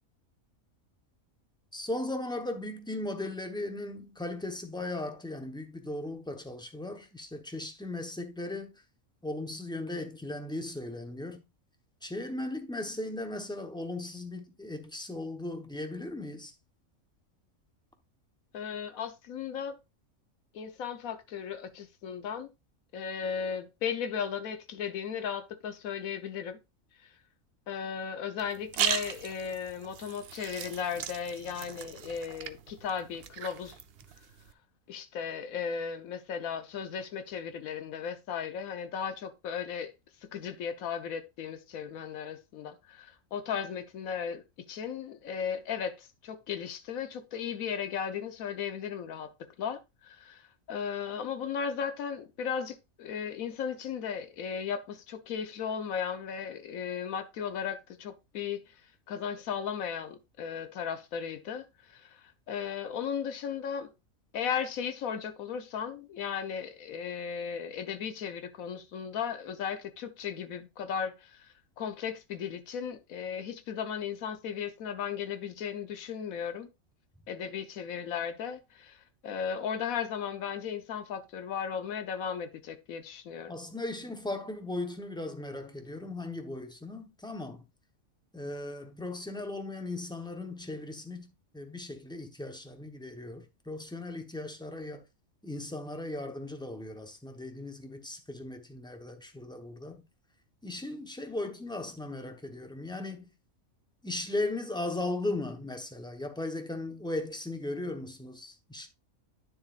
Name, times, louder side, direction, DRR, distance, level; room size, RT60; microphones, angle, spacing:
voice 1, 1.7-8.7 9.2-11.4 12.0-16.5 83.5-87.7 88.3-95.0 95.4-100.0 100.6-103.3 104.0-108.9, left 2 dB, 5° left, 0.8 m, -37 dB
voice 2, 18.5-19.8 20.5-22.5 22.9-26.6 27.7-33.8 34.9-39.9 40.3-44.4 44.7-49.3 49.6-50.4 50.7-58.6 59.1-61.7 61.9-62.2 62.5-63.9 64.3-71.5 71.8-76.7 77.3-79.0 79.2-83.6, left 7 dB, 90° left, 1.3 m, -36 dB
sound 1, 28.4-34.5, right 9 dB, 60° right, 0.7 m, -37 dB
9.7 x 6.9 x 2.4 m
omnidirectional pair, 1.4 m